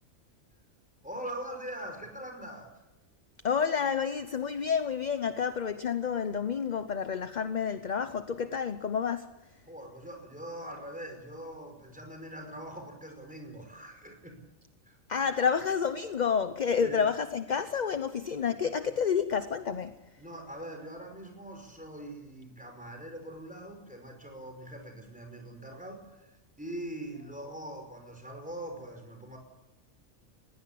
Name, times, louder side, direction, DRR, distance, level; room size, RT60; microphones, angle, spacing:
voice 1, 1.0-2.7 9.7-14.4 14.9-15.0 16.8-17.0 20.2-29.4, right 1 dB, 5° right, 5.4 m, -42 dB
voice 2, 3.4-9.3 15.1-20.0, left 6 dB, 40° left, 0.8 m, -29 dB
21.0 x 16.5 x 8.6 m
omnidirectional pair, 1.4 m